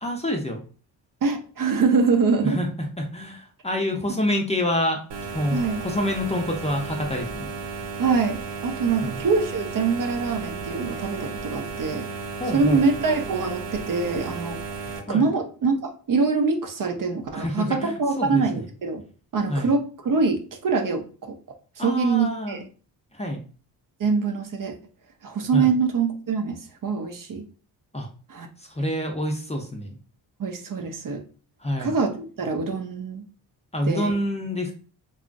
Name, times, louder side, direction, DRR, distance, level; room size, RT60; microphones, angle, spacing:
voice 1, 0.0-0.6 2.4-5.0 5.3-7.5 9.0-9.2 12.4-12.9 15.1-15.3 17.3-18.4 19.5-19.7 21.8-22.6 23.1-23.4 25.5-25.7 27.9-28.1 28.6-30.0 31.6-32.0 33.7-34.7, left 1 dB, 15° left, 2 dB, 0.6 m, -27 dB
voice 2, 1.2-2.6 5.5-5.8 8.0-12.1 12.5-14.6 15.1-19.0 19.3-21.3 21.8-22.6 24.0-24.8 25.2-27.4 28.3-28.5 30.4-31.2 31.8-33.2 33.8-34.1, right 4 dB, 45° right, 4 dB, 0.6 m, -24 dB
sound 1, 5.1-15.0, right 4 dB, 75° right, 0.8 m, -34 dB
2.8 x 2.3 x 2.5 m, 0.38 s
supercardioid pair, 60°, 44 cm